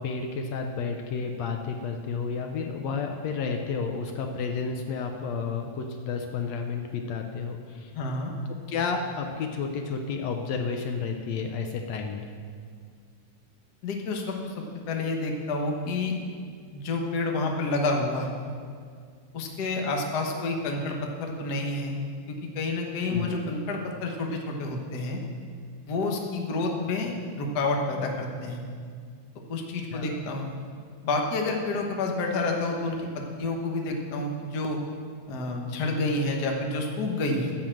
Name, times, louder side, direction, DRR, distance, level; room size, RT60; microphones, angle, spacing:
voice 1, 0.0-7.9 8.7-12.3 23.1-23.3 29.9-30.2, left 5 dB, 75° left, 4 dB, 1.8 m, -31 dB
voice 2, 7.9-8.3 13.8-16.1 16.7-18.3 19.3-21.9 22.3-25.2 25.9-28.6 29.5-30.5 31.0-34.8 35.3-37.5, left 2 dB, 50° left, 1 dB, 1.3 m, -29 dB
15.0 x 5.7 x 7.7 m, 2.1 s
omnidirectional pair, 3.3 m